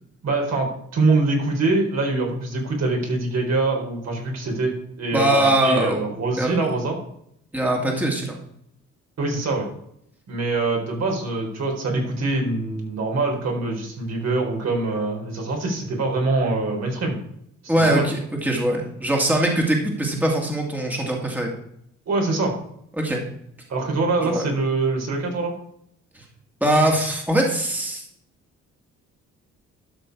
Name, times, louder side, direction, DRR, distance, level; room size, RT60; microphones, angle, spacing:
voice 1, 0.2-0.7 0.9-7.0 9.2-9.7 10.3-17.2 17.8-18.1 22.1-22.5 23.7-25.5, right 3 dB, 60° right, 0 dB, 4.0 m, -24 dB
voice 2, 5.1-6.0 6.4-6.5 7.5-8.4 17.7-21.5 23.0-23.2 24.2-24.5 26.1-26.2 26.6-28.0, right 1 dB, 5° right, 0 dB, 2.3 m, -22 dB
12.5 x 6.0 x 4.7 m, 0.72 s
cardioid pair, 90°, 30 cm